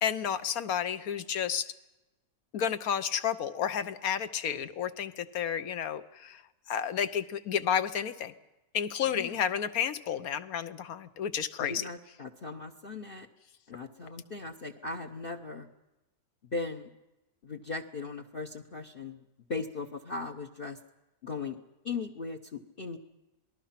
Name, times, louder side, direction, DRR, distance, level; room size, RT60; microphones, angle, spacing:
voice 1, 0.0-1.7 2.5-6.4 6.7-8.3 8.7-11.8, left 8 dB, 70° left, 12 dB, 1.4 m, -31 dB
voice 2, 9.0-9.4 11.6-13.3 13.7-15.7 16.5-16.9 17.4-19.2 19.5-20.8 21.2-21.6 21.8-23.0, left 4 dB, 40° left, 7 dB, 1.0 m, -38 dB
27.0 x 19.5 x 5.8 m, 1.0 s
omnidirectional pair, 1.7 m